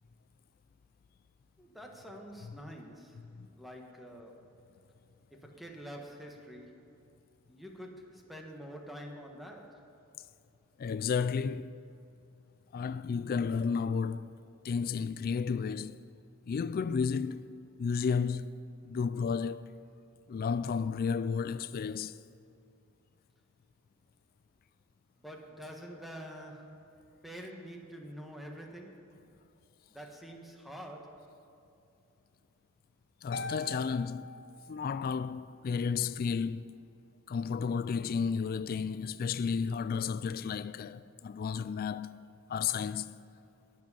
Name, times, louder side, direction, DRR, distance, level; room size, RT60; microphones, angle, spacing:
voice 1, 1.6-3.2 3.5-4.4 5.3-6.8 7.5-9.9 25.2-26.8 27.2-29.1 29.9-31.3, equal, ahead, 1.3 m, -47 dB
voice 2, 10.8-11.9 12.7-14.3 14.6-16.0 16.5-17.5 17.8-18.5 18.8-19.7 20.3-22.2 33.2-36.6 37.3-43.1, left 6 dB, 45° left, 0.3 m, -32 dB
Harp, 33.3-35.2, left 1 dB, 60° left, 1.5 m, -43 dB
21.0 x 7.5 x 5.5 m
head